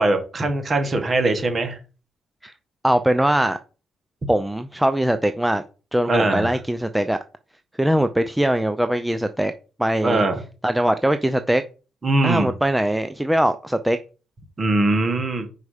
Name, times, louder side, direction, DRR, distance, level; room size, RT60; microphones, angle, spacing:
voice 1, 0.0-1.8 6.1-6.5 10.0-10.3 12.0-12.5 14.6-15.5, right 2 dB, 30° right, 1.7 m, -21 dB
voice 2, 2.8-3.6 4.3-5.6 5.9-7.2 7.8-9.5 9.8-10.2 10.6-11.6 12.2-14.0, right 1 dB, 5° right, 0.4 m, -21 dB
5.2 x 4.8 x 5.0 m
cardioid pair, 90°, 0 cm